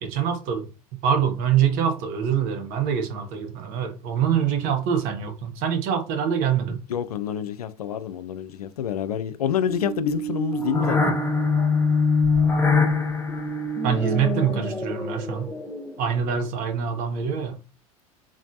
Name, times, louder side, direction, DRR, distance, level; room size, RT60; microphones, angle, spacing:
voice 1, 0.0-0.6 1.0-6.8 13.8-15.5 16.0-17.6, right 8 dB, 50° right, 1.0 m, -24 dB
voice 2, 6.9-11.2, left 9 dB, 75° left, 0.4 m, -27 dB
sound 1, 9.7-16.1, left 3 dB, 10° left, 0.7 m, -24 dB
3.8 x 3.1 x 2.6 m
figure-of-eight pair, 85°, 19 cm